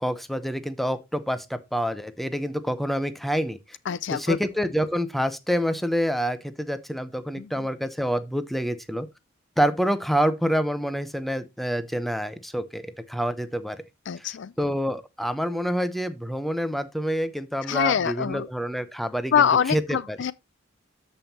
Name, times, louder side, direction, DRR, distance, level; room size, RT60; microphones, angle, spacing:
voice 1, 0.0-3.8 4.1-9.1 9.6-13.8 14.2-14.3 14.6-20.2, equal, ahead, 0.7 m, -27 dB
voice 2, 3.9-4.4 7.4-7.7 14.1-14.5 17.6-18.5 19.3-20.3, left 7 dB, 60° left, 0.4 m, -24 dB
13.0 x 5.5 x 2.8 m
head